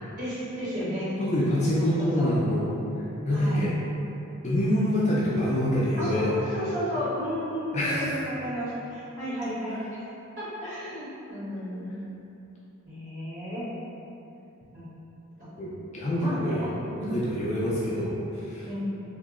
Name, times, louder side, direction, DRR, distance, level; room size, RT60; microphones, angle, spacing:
voice 1, 0.2-1.1 1.8-1.9 2.2-2.3 3.3-3.7 6.0-10.0 10.4-12.0 12.8-13.7 14.7-14.8 16.2-17.1 18.6-18.8, equal, 40° right, -13 dB, 1.3 m, -33 dB
voice 2, 1.2-2.7 3.3-3.7 4.4-6.3 7.7-8.1 15.6-16.7 17.0-18.7, equal, 30° left, -7 dB, 0.3 m, -26 dB
2.8 x 2.0 x 3.6 m, 2.8 s
head